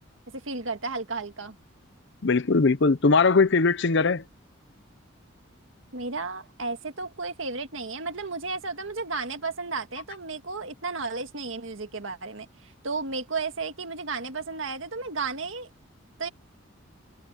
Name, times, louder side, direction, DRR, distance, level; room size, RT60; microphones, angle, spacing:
voice 1, 0.3-1.6 5.9-15.7 16.2-16.3, right 4 dB, 65° right, 1.9 m, -33 dB
voice 2, 2.2-4.2, left 4 dB, 55° left, 0.7 m, -20 dB
head